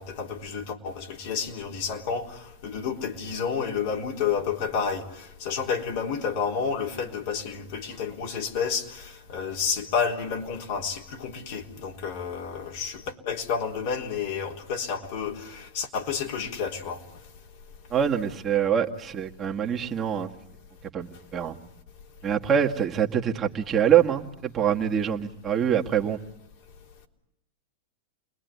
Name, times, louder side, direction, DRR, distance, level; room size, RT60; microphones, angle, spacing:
voice 1, 0.0-17.0, left 6 dB, 60° left, 3.7 m, -30 dB
voice 2, 17.9-20.3 20.9-21.6 22.2-26.2, right 9 dB, 30° right, 1.8 m, -24 dB
29.0 x 21.0 x 9.5 m
hypercardioid pair, 110°, 0 cm